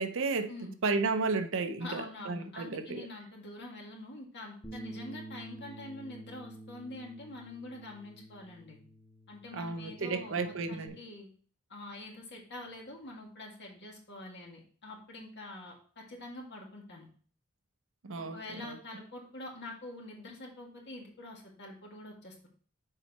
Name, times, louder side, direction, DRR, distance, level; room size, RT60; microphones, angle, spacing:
voice 1, 0.0-0.5 0.8-3.1 9.5-11.0 18.0-18.8, right 4 dB, 65° right, 0.6 m, -33 dB
voice 2, 1.8-8.8 9.3-11.3 11.7-17.1 18.2-22.5, left 2 dB, 55° left, 2.0 m, -45 dB
Bass guitar, 4.6-10.9, right 2 dB, 15° left, 1.5 m, -49 dB
6.8 x 4.5 x 4.2 m
head